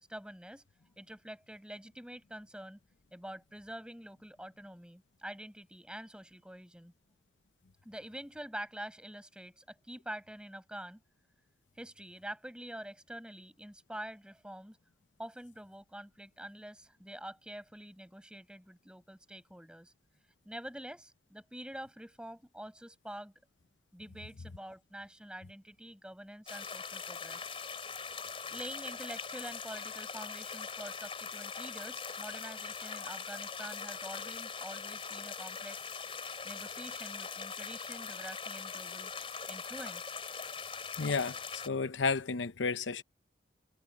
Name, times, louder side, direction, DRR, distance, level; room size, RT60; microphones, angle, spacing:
voice 1, 0.1-0.6 1.0-2.8 3.1-6.9 7.8-11.0 11.8-14.8 15.2-19.9 20.4-23.3 23.9-27.5 28.5-35.9 36.4-39.1 39.5-40.1, right 1 dB, 5° right, 6.7 m, -46 dB
sound 1, 26.5-41.7, left 5 dB, 30° left, 3.8 m, -42 dB
voice 2, 41.0-43.0, left 4 dB, 85° left, 0.7 m, -32 dB
head